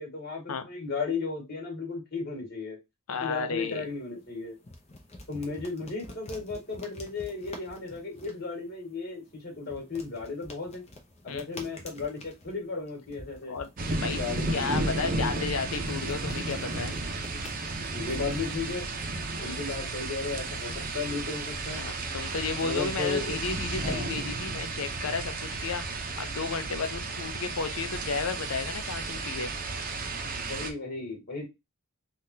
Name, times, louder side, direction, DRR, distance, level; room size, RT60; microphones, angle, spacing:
voice 1, 0.0-2.8 3.2-4.6 5.3-10.8 11.2-13.5 14.0-15.4 17.9-18.8 19.4-21.8 22.6-23.4 23.7-24.1 30.3-31.5, left 4 dB, 50° left, 1.7 m, -35 dB
voice 2, 3.1-3.9 11.3-11.5 13.5-14.2 14.5-17.0 19.4-19.6 21.8-25.8 26.2-29.5, left 5 dB, 85° left, 0.6 m, -33 dB
sound 1, 3.6-21.8, left 1 dB, 30° left, 0.7 m, -49 dB
sound 2, 13.8-30.7, right 2 dB, 40° right, 0.6 m, -33 dB
3.6 x 2.4 x 2.7 m
head